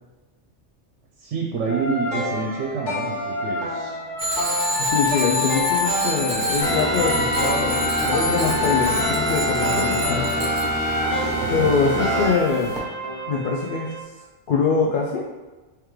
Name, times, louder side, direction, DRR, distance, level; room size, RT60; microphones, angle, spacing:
voice 1, 1.2-4.0 11.4-11.7, right 5 dB, 80° right, 0 dB, 0.9 m, -28 dB
sound 1, 1.7-14.0, left 1 dB, 90° left, 1.3 m, -27 dB
Bicycle bell, 4.2-10.6, right 1 dB, 45° right, 0.8 m, -29 dB
voice 2, 4.8-10.3 11.5-12.7 13.3-14.0 14.5-15.3, left 5 dB, 60° left, -3 dB, 0.6 m, -24 dB
sound 2, 6.6-12.8, equal, 5° left, 1.1 m, -25 dB
3.5 x 3.2 x 3.2 m, 1.2 s
omnidirectional pair, 1.2 m